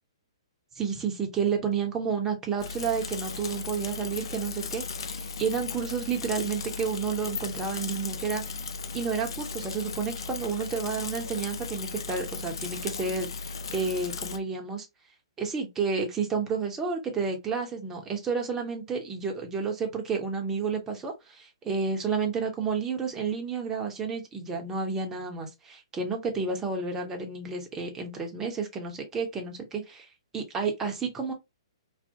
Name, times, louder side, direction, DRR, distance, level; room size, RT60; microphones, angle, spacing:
voice 1, 0.8-8.5 8.9-14.9 15.4-30.1 30.3-31.3, right 5 dB, 15° right, 0.7 m, -31 dB
Bicycle / Mechanisms, 2.6-14.4, left 4 dB, 60° left, 0.4 m, -36 dB
2.4 x 2.0 x 2.6 m
figure-of-eight pair, 120°, 3 cm